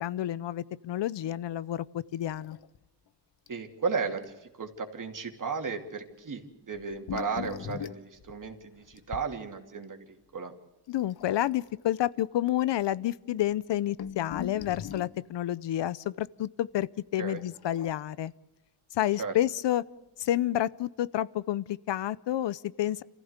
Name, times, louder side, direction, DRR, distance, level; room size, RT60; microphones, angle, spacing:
voice 1, 0.0-2.6 10.9-18.3 18.9-19.8 20.2-23.0, left 12 dB, 85° left, 19 dB, 0.7 m, -29 dB
sound 1, 2.2-2.8 3.1-3.2 3.5-3.7 4.2-4.3 6.7-9.3 11.0-11.7 12.5-12.6 12.8-12.9 13.5-15.2 17.4-18.3 19.6-19.7 20.3-20.4, left 9 dB, 65° left, 1.0 m, -41 dB
voice 2, 3.5-10.5 17.2-17.4 19.2-19.3, right 5 dB, 50° right, 4 dB, 2.7 m, -35 dB
27.5 x 15.0 x 8.1 m, 1.1 s
wide cardioid pair, 135°, 41 cm